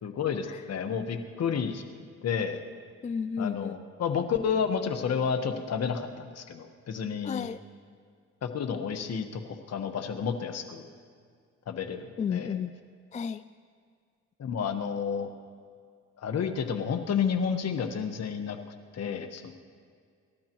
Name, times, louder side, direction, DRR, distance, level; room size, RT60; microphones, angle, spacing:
voice 1, 0.0-1.8 2.2-2.6 3.4-7.5 8.4-10.9 11.7-12.6 14.4-15.3 16.2-18.6 18.9-19.5, left 6 dB, 55° left, 6 dB, 1.3 m, -31 dB
voice 2, 3.0-3.7 7.2-7.6 12.2-12.7 13.1-13.4, left 6 dB, 25° left, 13 dB, 0.3 m, -32 dB
28.5 x 13.0 x 3.1 m, 2.2 s
cardioid pair, 90°, 30 cm